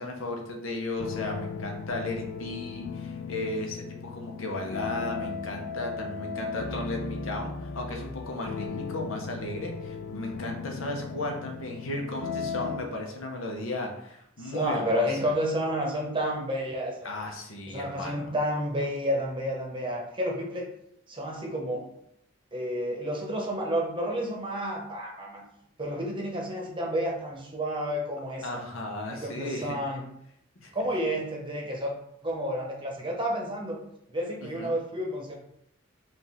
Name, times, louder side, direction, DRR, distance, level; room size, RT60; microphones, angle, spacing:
voice 1, 0.0-15.3 17.0-18.3 28.4-29.8 30.6-30.7 34.4-34.8, left 2 dB, 80° left, 1 dB, 0.9 m, -35 dB
sound 1, 1.0-12.8, left 5 dB, 65° left, 0.4 m, -37 dB
voice 2, 14.4-17.0 17.7-20.7 21.1-21.9 22.5-25.4 25.8-28.6 29.1-30.0 30.7-32.0 32.2-33.8 34.1-35.3, equal, 25° right, 0 dB, 0.8 m, -30 dB
4.9 x 2.5 x 3.5 m, 0.75 s
head